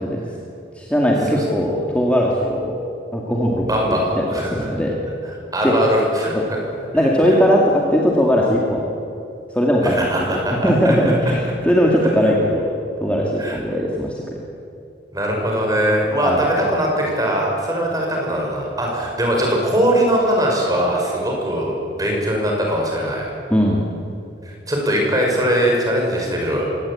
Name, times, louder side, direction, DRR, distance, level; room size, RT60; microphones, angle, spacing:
voice 1, 0.8-2.8 3.1-5.0 5.6-5.7 6.3-6.4 6.9-8.8 9.5-12.7 13.0-14.4 16.1-16.4 23.5-23.8, equal, 5° left, -2 dB, 2.3 m, -19 dB
voice 2, 3.7-4.7 5.5-6.6 9.8-11.3 13.4-13.6 15.1-23.3 24.4-26.6, equal, 20° right, -1 dB, 5.9 m, -21 dB
24.0 x 18.5 x 8.7 m, 2.7 s
head